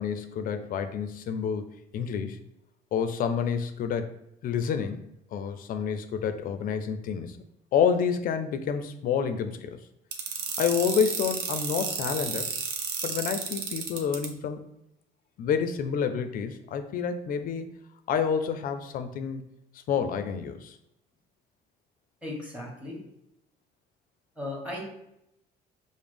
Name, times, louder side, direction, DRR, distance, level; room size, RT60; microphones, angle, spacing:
voice 1, 0.0-2.4 2.9-4.1 4.4-7.4 7.7-9.8 10.6-12.5 13.0-14.6 15.4-17.7 18.1-19.4 19.9-20.8, left 7 dB, 55° left, 9 dB, 0.5 m, -29 dB
sound 1, 10.1-14.3, right 6 dB, 75° right, 0.7 m, -31 dB
voice 2, 22.2-23.0 24.4-24.8, left 1 dB, 10° right, -3 dB, 1.5 m, -36 dB
5.1 x 2.1 x 3.3 m, 0.82 s
cardioid pair, 110°, 17 cm